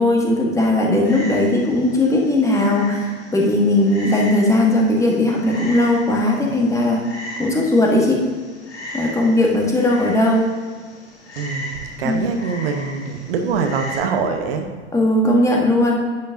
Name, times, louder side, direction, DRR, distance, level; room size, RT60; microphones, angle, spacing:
voice 1, 0.0-7.0 7.4-8.2 8.9-10.5 12.0-12.3 14.9-16.0, left 1 dB, 10° left, -1 dB, 1.4 m, -18 dB
Frog, 1.0-14.0, equal, 70° left, 2.6 m, -36 dB
voice 2, 11.4-14.7, right 5 dB, 55° right, 5 dB, 1.0 m, -24 dB
10.5 x 8.8 x 2.7 m, 1.5 s
figure-of-eight pair, 90°, 35 cm